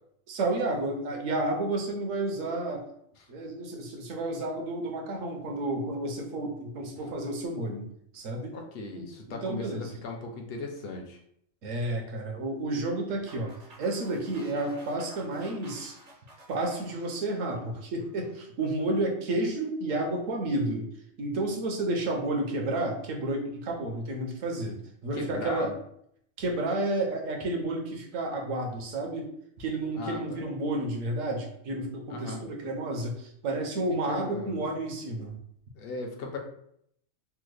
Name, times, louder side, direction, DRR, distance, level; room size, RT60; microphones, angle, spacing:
voice 1, 0.3-2.9 3.3-8.5 9.0-9.9 11.6-13.5 13.8-15.9 16.5-20.9 21.2-25.7 26.4-29.3 29.6-35.4, right 2 dB, 75° right, 2 dB, 1.1 m, -31 dB
voice 2, 8.5-11.2 25.1-25.7 30.0-30.4 32.1-32.4 34.1-34.6 35.8-36.4, left 3 dB, 60° left, 2 dB, 0.6 m, -37 dB
sound 1, 13.3-18.4, right 1 dB, 55° right, 0.4 m, -52 dB
3.5 x 2.0 x 3.2 m, 0.70 s
omnidirectional pair, 1.4 m